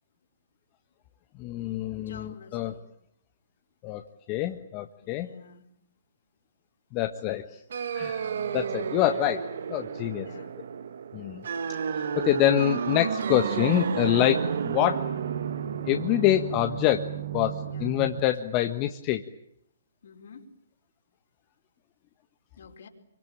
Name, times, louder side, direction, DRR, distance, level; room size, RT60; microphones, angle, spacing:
voice 1, 1.4-2.7 3.8-4.0 4.3-5.3 6.9-7.4 7.9-8.3 8.5-10.3 11.1-11.4 12.2-15.0 15.9-17.1 17.3-19.2, left 13 dB, 30° left, 6 dB, 1.4 m, -26 dB
voice 2, 1.9-2.8 5.0-5.7 8.2-8.7 10.2-10.6 16.1-16.4 17.6-18.0 20.0-20.4 22.6-22.9, left 5 dB, 65° left, 3 dB, 5.0 m, -48 dB
sound 1, 7.7-18.2, right 7 dB, 60° right, 1.5 m, -32 dB
26.5 x 24.5 x 9.0 m, 0.77 s
figure-of-eight pair, 130°, 0 cm